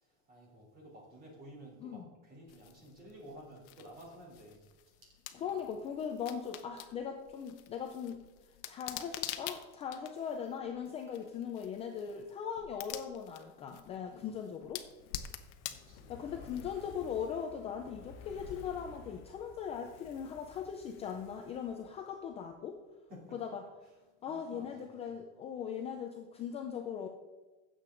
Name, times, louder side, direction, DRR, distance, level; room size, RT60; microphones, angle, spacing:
voice 1, 0.0-4.7 5.3-5.6 15.7-16.3 23.1-23.4 24.1-25.1, equal, 25° right, -2 dB, 3.2 m, -53 dB
sound 1, 2.5-17.0, left 12 dB, 65° left, 0.9 m, -48 dB
voice 2, 5.3-8.2 8.7-14.8 16.1-22.8 23.3-23.6 24.2-27.1, left 7 dB, 20° left, 3 dB, 0.4 m, -39 dB
Fire, 14.9-22.2 22.5-22.6, left 5 dB, 35° left, 0.8 m, -54 dB
15.0 x 7.6 x 3.8 m, 1.2 s
supercardioid pair, 175°, 37 cm